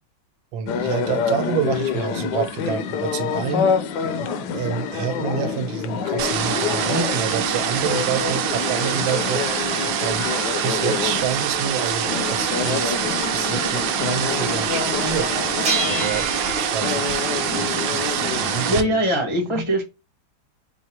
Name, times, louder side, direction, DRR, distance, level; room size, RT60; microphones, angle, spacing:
voice 1, 0.5-3.7 4.2-9.4 10.0-10.3 10.6-13.0 13.3-15.3 15.9-16.3 16.6-19.0 19.5-19.6, right 8 dB, 90° right, 1.5 m, -28 dB
sound 1, 0.7-18.7, left 6 dB, 70° left, 1.1 m, -27 dB
sound 2, 6.2-18.8, right 9 dB, 75° right, 1.3 m, -25 dB
sound 3, 12.3-12.4 12.9-13.0 13.4-13.7 15.7-18.8, right 3 dB, 45° right, 0.7 m, -30 dB
voice 2, 18.7-19.8, equal, 45° left, 0.3 m, -21 dB
4.6 x 2.0 x 4.3 m
omnidirectional pair, 2.1 m